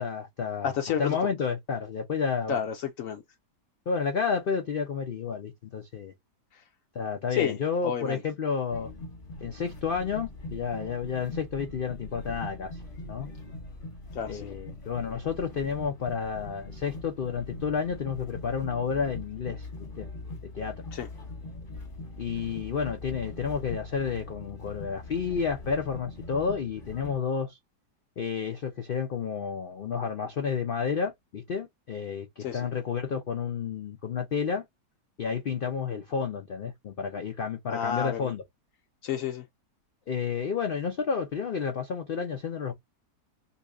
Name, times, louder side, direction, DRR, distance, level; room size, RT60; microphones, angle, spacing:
voice 1, 0.0-0.7 1.0-2.6 3.9-6.1 6.9-8.9 9.4-12.8 13.1-13.3 14.3-19.7 20.0-20.1 20.5-20.7 22.2-27.6 28.2-34.6 35.2-38.4 40.1-42.7, left 6 dB, 90° left, 0.4 m, -31 dB
voice 2, 0.6-1.3 2.5-3.2 6.5-6.6 7.3-7.6 7.8-8.2 14.1-14.5 20.9-21.1 32.4-32.7 37.7-38.3 39.0-39.4, left 8 dB, 70° left, 0.8 m, -31 dB
sound 1, 8.7-27.2, left 2 dB, 35° left, 1.2 m, -42 dB
2.8 x 2.7 x 3.4 m
omnidirectional pair, 1.8 m